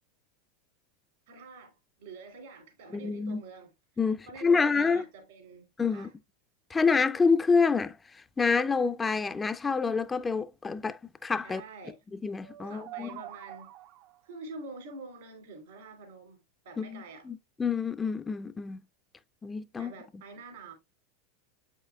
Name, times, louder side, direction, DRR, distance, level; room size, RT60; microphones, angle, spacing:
voice 1, 1.3-1.7 2.0-3.7 4.3-6.1 11.4-12.0 12.6-13.7 14.2-16.4 16.6-17.3 19.8-20.7, right 3 dB, 75° right, 2.6 m, -46 dB
voice 2, 2.9-3.4 4.0-5.0 5.8-6.1 6.7-11.6 12.1-13.2 16.8-18.8 19.4-19.9, left 5 dB, 20° left, 0.3 m, -27 dB
sound 1, 12.4-14.3, right 14 dB, 55° right, 0.5 m, -46 dB
7.7 x 5.6 x 2.3 m
hypercardioid pair, 95°, 0 cm